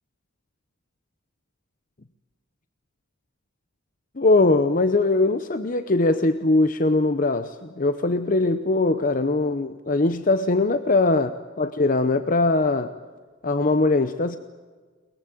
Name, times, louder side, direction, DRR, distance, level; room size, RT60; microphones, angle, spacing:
voice 1, 4.2-12.9 13.4-14.4, left 2 dB, 40° left, 0.8 m, -21 dB
22.5 x 22.0 x 9.1 m
head